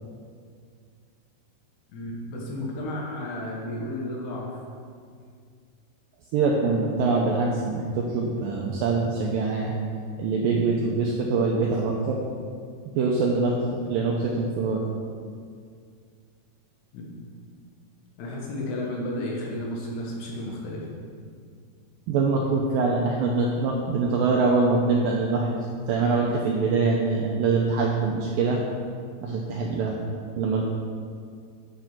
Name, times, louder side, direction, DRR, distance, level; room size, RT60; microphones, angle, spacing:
voice 1, 1.9-4.6 16.9-17.0 18.2-20.8, left 1 dB, 70° left, -3 dB, 3.4 m, -32 dB
voice 2, 6.3-9.7 10.2-12.2 12.9-13.6 13.8-14.8 22.1-28.6 29.2-30.0 30.4-30.6, right 4 dB, 85° right, -1 dB, 2.0 m, -24 dB
10.5 x 5.6 x 6.0 m, 2.2 s
omnidirectional pair, 5.0 m